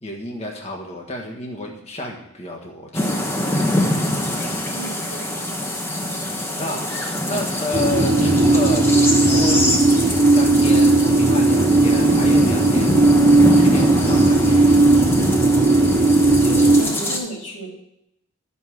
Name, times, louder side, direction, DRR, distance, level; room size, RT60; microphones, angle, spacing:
voice 1, 0.0-3.7 4.4-4.7 6.6-9.7 10.2-14.8, left 1 dB, 30° left, 0 dB, 1.5 m, -31 dB
sound 1, 2.9-17.2, left 1 dB, 10° left, 1.0 m, -24 dB
voice 2, 4.7-5.4 6.6-6.8 16.3-17.9, right 2 dB, 65° left, -2 dB, 2.7 m, -34 dB
sound 2, 7.7-16.8, right 2 dB, 25° right, 0.6 m, -16 dB
11.0 x 5.6 x 6.4 m, 0.82 s
head